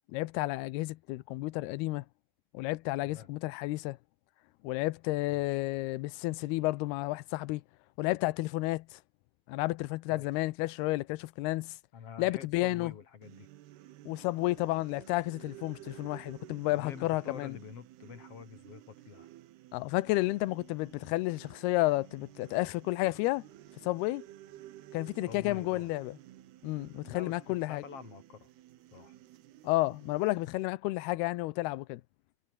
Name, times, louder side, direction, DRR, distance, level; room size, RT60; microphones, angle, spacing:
voice 1, 0.1-2.1 2.5-4.0 4.6-7.6 8.0-9.0 9.5-11.8 12.2-12.9 14.1-17.6 19.7-23.5 23.8-24.2 24.9-26.2 26.6-27.8 29.6-32.0, left 19 dB, 85° left, 2.6 m, -31 dB
voice 2, 5.3-5.6 10.1-10.3 11.9-13.5 16.7-19.3 25.3-25.9 27.1-28.5 28.9-29.2, left 7 dB, 45° left, 2.4 m, -47 dB
sound 1, 13.2-30.7, right 14 dB, 75° right, 3.2 m, -53 dB
omnidirectional pair, 4.7 m